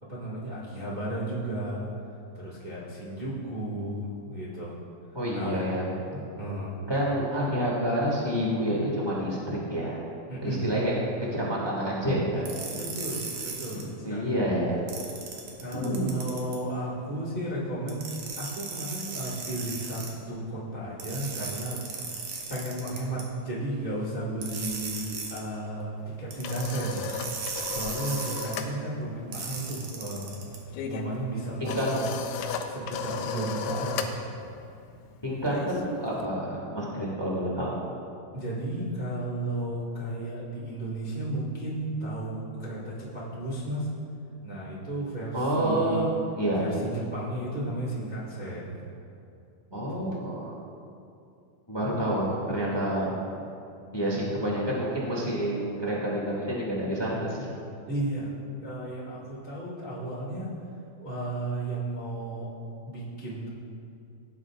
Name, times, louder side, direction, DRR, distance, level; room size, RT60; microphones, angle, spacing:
voice 1, 0.0-1.9 2.3-4.8 5.3-5.6 6.1-6.8 10.3-10.8 12.6-14.3 15.6-18.0 18.4-21.8 22.5-27.0 27.7-30.3 30.9-34.1 38.3-43.9 44.4-46.1 46.6-48.8 49.7-50.1 57.9-60.5 61.0-62.5 62.8-63.5, right 1 dB, 85° right, -7 dB, 0.4 m, -34 dB
voice 2, 5.1-5.8 6.9-10.0 10.4-10.9 11.3-12.4 13.7-14.7 15.8-16.1 31.6-31.9 35.2-37.7 45.3-46.1 46.3-46.7 49.7-50.5 51.7-53.1 53.9-57.5, equal, 25° left, -5 dB, 0.6 m, -28 dB
sound 1, 12.4-13.8 14.9-16.6 17.9-20.1 21.0-23.2 24.4-25.4 26.3-28.6 29.3-30.6, right 4 dB, 65° right, 2.3 m, -37 dB
sound 2, 26.1-28.8 29.0-29.3 29.6-36.3, left 6 dB, 80° left, 2.1 m, -36 dB
16.5 x 9.4 x 2.4 m, 2.6 s
omnidirectional pair, 4.1 m